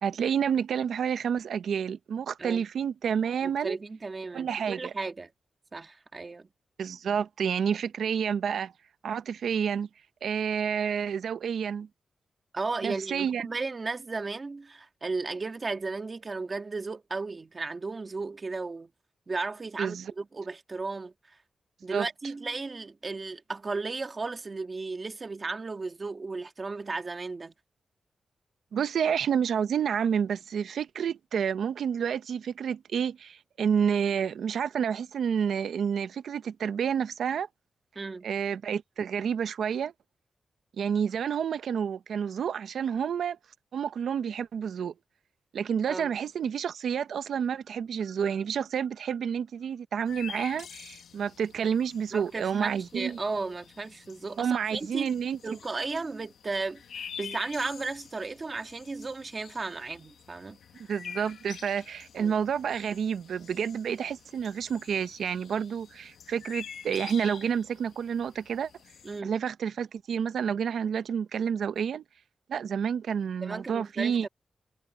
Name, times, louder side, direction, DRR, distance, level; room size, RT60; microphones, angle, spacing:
voice 1, 0.0-3.8 4.3-4.8 6.8-8.7 9.0-9.9 10.2-11.9 12.8-13.5 19.8-20.1 21.9-22.1 28.7-37.5 38.2-39.9 40.8-43.4 43.7-44.9 45.5-53.2 54.4-55.4 60.9-68.7 69.2-72.0 72.5-74.3, right 7 dB, 75° right, 0.7 m, -29 dB
voice 2, 3.4-5.3 5.7-6.5 12.5-18.9 19.3-21.4 21.8-27.5 38.0-38.3 45.9-46.1 52.1-55.1 55.4-60.6 62.2-62.3 69.0-69.3 73.4-74.3, right 3 dB, 30° right, 1.8 m, -35 dB
sound 1, 50.1-69.2, left 8 dB, 85° left, 1.3 m, -47 dB
wide cardioid pair, 165°, 0 cm